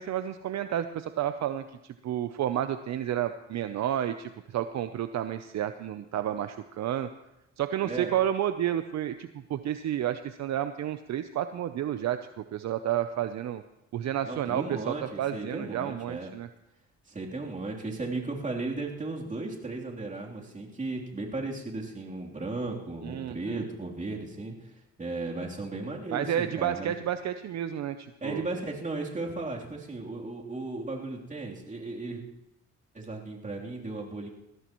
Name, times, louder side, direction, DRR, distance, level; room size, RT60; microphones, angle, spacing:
voice 1, 0.0-7.1 7.6-13.6 13.9-16.5 23.0-23.7 26.1-28.4, right 11 dB, 65° right, 10 dB, 0.7 m, -31 dB
voice 2, 7.8-8.1 14.2-16.3 17.1-24.7 25.0-26.9 28.2-32.2 32.9-34.3, right 2 dB, 25° right, -2 dB, 3.3 m, -35 dB
20.5 x 15.5 x 3.1 m, 0.89 s
cardioid pair, 90°, 30 cm